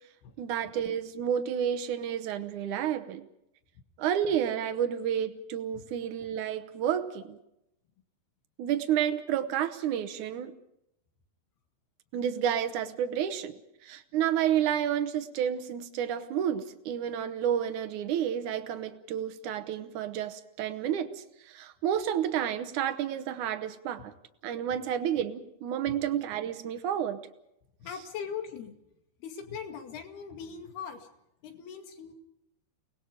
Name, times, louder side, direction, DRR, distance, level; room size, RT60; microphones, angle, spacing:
voice 1, 0.4-3.3 4.0-7.4 8.6-10.5 12.1-13.5 13.8-24.1 24.4-27.3, right 9 dB, 75° right, 9 dB, 1.8 m, -30 dB
voice 2, 27.8-28.8 29.2-31.1 31.4-32.1, left 7 dB, 65° left, 5 dB, 4.1 m, -40 dB
29.5 x 20.0 x 5.2 m, 0.82 s
omnidirectional pair, 5.0 m